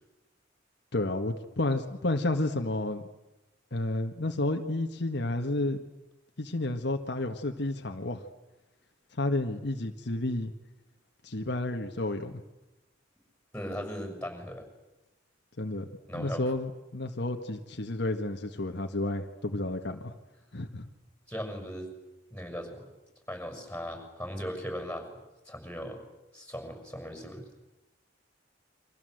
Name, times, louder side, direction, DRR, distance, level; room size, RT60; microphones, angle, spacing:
voice 1, 0.9-3.1 3.7-5.8 6.4-8.2 9.2-10.5 11.2-12.4 15.6-15.9 16.1-20.1 20.5-20.9, left 2 dB, 60° left, 4 dB, 1.6 m, -31 dB
voice 2, 13.5-14.7 16.1-16.4 21.3-21.9 22.3-22.9 23.3-25.1 25.4-26.0 26.3-27.5, equal, 5° left, 5 dB, 6.4 m, -38 dB
29.5 x 25.0 x 7.9 m, 1.0 s
head